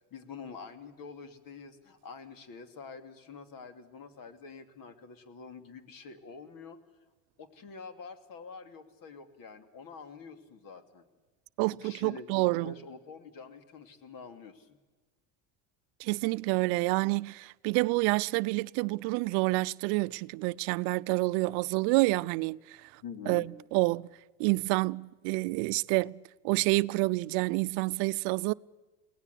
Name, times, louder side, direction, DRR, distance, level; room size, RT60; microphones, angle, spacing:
voice 1, 0.1-6.8 7.4-11.0 11.8-14.7 23.0-23.5, left 5 dB, 55° left, 2.9 m, -46 dB
voice 2, 11.6-12.7 16.0-23.0 23.3-24.1 24.4-28.5, right 24 dB, 70° right, 0.7 m, -28 dB
23.5 x 18.0 x 8.3 m
supercardioid pair, 100°, 41 cm